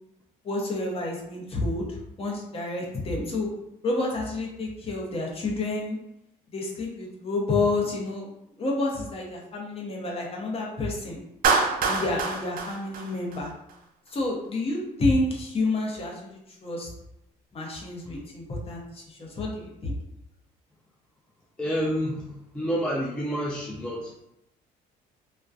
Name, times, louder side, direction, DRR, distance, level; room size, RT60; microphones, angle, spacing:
voice 1, 0.4-3.5 3.8-6.0 6.5-8.3 8.6-11.2 11.9-13.5 14.1-16.9 17.5-19.9, left 2 dB, 35° left, -2 dB, 0.7 m, -29 dB
Clapping, 11.4-13.7, right 4 dB, 60° right, 0.4 m, -25 dB
voice 2, 21.6-24.1, equal, 5° left, -5 dB, 0.4 m, -29 dB
2.5 x 2.1 x 2.3 m, 0.83 s
cardioid pair, 110°, 17 cm